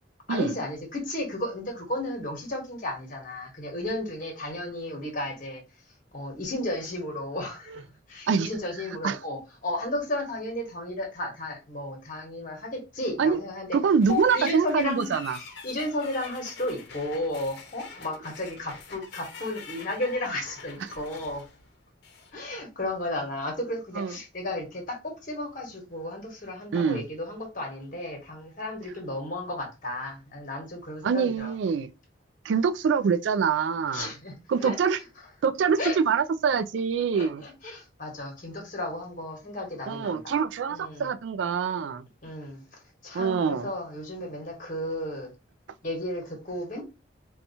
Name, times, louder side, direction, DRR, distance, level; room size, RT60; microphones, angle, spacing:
voice 1, 0.3-5.6 6.1-13.8 14.1-21.4 22.3-31.5 33.9-35.0 35.8-36.0 37.1-40.4 40.7-41.1 42.2-45.3 45.8-46.8, left 1 dB, 45° left, 1.2 m, -34 dB
voice 2, 13.7-15.4 24.0-24.1 26.7-27.0 31.0-31.9 32.4-34.1 34.5-35.0 35.4-37.4 39.9-42.0 43.1-43.7, right 6 dB, 70° right, 0.3 m, -25 dB
sound 1, 14.0-22.3, left 4 dB, 60° left, 0.8 m, -45 dB
4.1 x 2.3 x 2.7 m
head